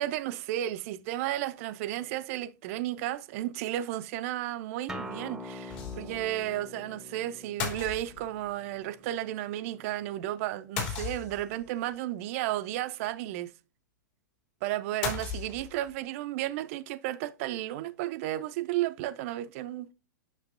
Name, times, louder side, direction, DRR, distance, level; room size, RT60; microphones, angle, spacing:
voice 1, 0.0-13.5 14.6-19.9, right 14 dB, 50° right, 0.5 m, -33 dB
Acoustic guitar, 4.9-10.1, left 1 dB, 5° right, 0.8 m, -45 dB
sound 1, 5.7-6.3 6.5-6.6 7.6-8.5 10.8-11.6 15.0-15.9, left 6 dB, 50° left, 2.9 m, -35 dB
8.3 x 6.0 x 2.6 m
hypercardioid pair, 105°, 10 cm